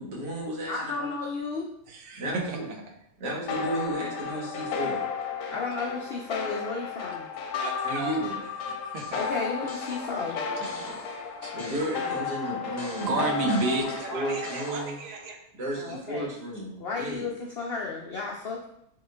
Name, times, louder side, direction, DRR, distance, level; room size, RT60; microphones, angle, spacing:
voice 1, 0.0-1.1 2.2-2.7 3.2-5.1 7.8-8.4 11.5-15.0 15.5-17.3, right 1 dB, 90° right, -4 dB, 1.9 m, -33 dB
voice 2, 0.7-1.7 5.5-7.3 9.1-10.4 15.8-16.3 16.8-18.7, left 4 dB, 80° left, -1 dB, 0.5 m, -33 dB
voice 3, 1.9-2.8 7.6-8.2 8.7-9.2 10.5-11.1 11.4-11.8 12.4-15.4, right 3 dB, 60° right, 2 dB, 1.1 m, -32 dB
sound 1, 3.5-14.8, left 6 dB, 65° left, 0.9 m, -33 dB
sound 2, 7.8-8.5 9.0-12.3 12.8-15.2, left 2 dB, 35° left, 0.9 m, -45 dB
7.3 x 3.1 x 2.3 m, 0.74 s
omnidirectional pair, 1.7 m